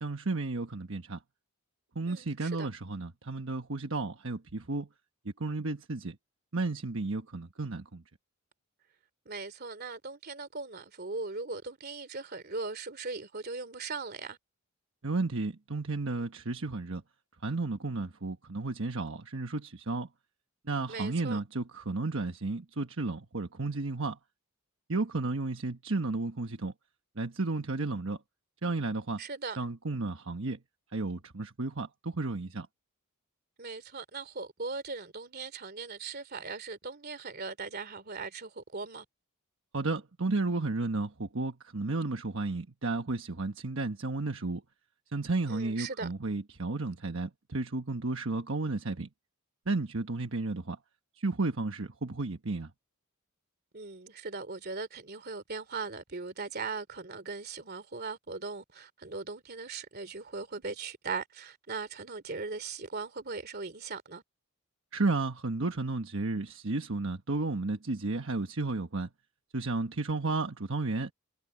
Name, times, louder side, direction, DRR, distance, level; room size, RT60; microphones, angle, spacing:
voice 1, 0.0-1.2 1.9-4.9 5.2-6.2 6.5-8.0 15.0-17.0 17.4-20.1 20.6-24.2 24.9-26.7 27.2-28.2 28.6-29.2 29.6-30.6 30.9-32.7 39.7-44.6 45.1-49.1 49.7-50.8 51.2-52.7 64.9-69.1 69.5-71.1, right 3 dB, 60° right, 1.3 m, -33 dB
voice 2, 2.1-2.7 9.2-14.4 20.9-21.4 29.2-29.6 33.6-39.0 45.5-46.1 53.7-64.2, right 4 dB, 45° right, 2.9 m, -39 dB
head